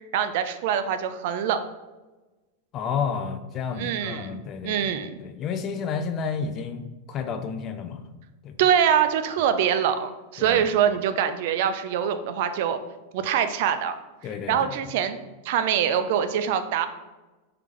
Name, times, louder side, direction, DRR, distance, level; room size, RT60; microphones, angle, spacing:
voice 1, 0.0-1.6 3.8-5.2 8.6-12.8 13.1-14.0 14.5-15.2 15.4-16.9, right 8 dB, 60° right, 10 dB, 0.3 m, -24 dB
voice 2, 2.7-8.0 8.4-8.5 10.4-10.7 14.2-14.8, left 6 dB, 35° left, 9 dB, 0.4 m, -31 dB
3.6 x 3.3 x 3.1 m, 1.2 s
supercardioid pair, 135°, 0 cm